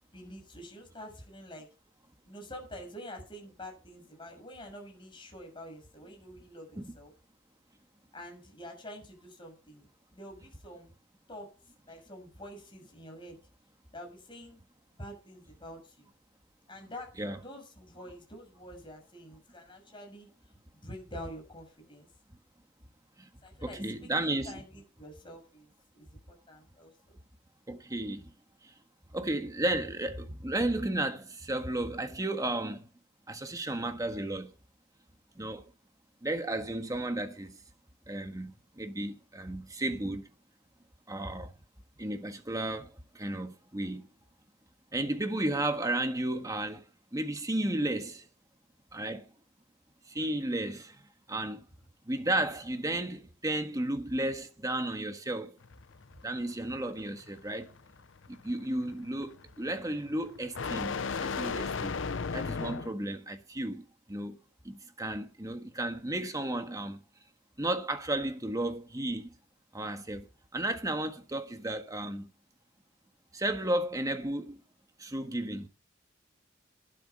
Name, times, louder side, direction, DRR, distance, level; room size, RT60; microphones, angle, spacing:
voice 1, 0.1-1.7 2.2-7.1 8.1-10.9 11.3-11.5 11.9-13.4 13.9-14.6 15.0-16.1 16.7-22.1 23.4-27.2, equal, 25° left, 6.7 m, -47 dB
voice 2, 23.6-24.6 27.7-28.3 28.6-28.7 29.1-32.9 33.3-34.5 35.3-35.7 36.2-37.6 38.1-40.3 41.1-41.5 42.0-44.1 44.9-46.8 47.1-48.3 48.9-49.3 50.1-51.7 52.0-55.6 56.2-57.7 58.3-61.9 62.3-64.4 64.6-67.0 67.6-69.3 69.7-70.3 70.5-72.3 73.3-74.6 75.0-75.7, right 1 dB, 20° right, 1.6 m, -33 dB
sound 1, 55.6-62.9, left 5 dB, 80° left, 0.7 m, -36 dB
12.0 x 10.5 x 5.4 m
head